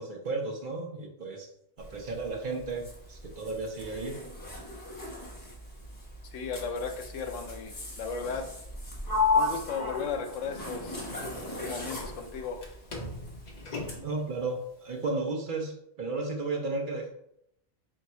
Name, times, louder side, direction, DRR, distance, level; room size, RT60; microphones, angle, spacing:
voice 1, 0.0-1.5 1.8-4.2 9.4-9.5 11.6-11.7 14.0-17.1, right 3 dB, 50° right, 2 dB, 0.7 m, -34 dB
Zipper (clothing), 1.8-14.0, equal, 20° left, 0.9 m, -43 dB
voice 2, 6.2-8.5 9.3-11.0 11.6-12.6, left 5 dB, 80° left, 5 dB, 1.0 m, -35 dB
Sliding door, 9.1-12.7 12.9-14.2, left 4 dB, 45° left, 0.7 m, -31 dB
3.4 x 2.8 x 4.2 m, 0.76 s
omnidirectional pair, 1.3 m